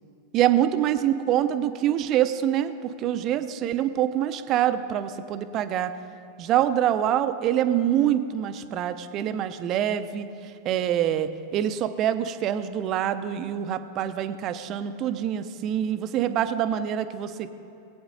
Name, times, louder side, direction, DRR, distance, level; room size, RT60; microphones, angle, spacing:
voice 1, 0.3-5.9 6.4-10.3 10.6-17.5, right 11 dB, 35° right, 11 dB, 0.6 m, -25 dB
20.0 x 8.8 x 3.9 m, 2.7 s
figure-of-eight pair, 90°, 0 cm